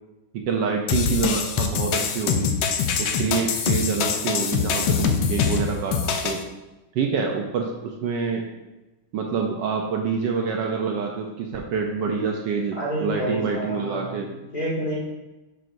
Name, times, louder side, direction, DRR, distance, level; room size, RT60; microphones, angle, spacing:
voice 1, 0.3-2.5 3.0-6.0 6.2-6.4 6.9-8.4 9.1-14.3, right 5 dB, 70° right, 1 dB, 1.2 m, -26 dB
sound 1, 0.9-6.4, left 6 dB, 80° left, 1.4 m, -24 dB
voice 2, 12.8-15.0, right 1 dB, 20° left, -6 dB, 2.1 m, -29 dB
11.0 x 4.5 x 2.6 m, 1.1 s
omnidirectional pair, 2.1 m